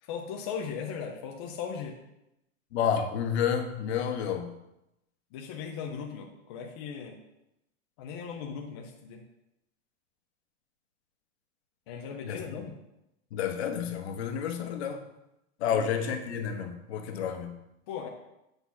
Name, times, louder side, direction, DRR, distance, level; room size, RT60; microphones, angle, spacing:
voice 1, 0.0-2.0 5.3-7.2 8.0-9.2 11.9-12.8 15.6-15.9 17.9-18.1, left 6 dB, 20° left, 1 dB, 0.4 m, -38 dB
voice 2, 2.7-4.5 12.2-12.4 13.3-15.0 15.6-17.5, left 8 dB, 50° left, 6 dB, 1.1 m, -30 dB
8.4 x 3.9 x 5.6 m, 0.89 s
supercardioid pair, 155°, 41 cm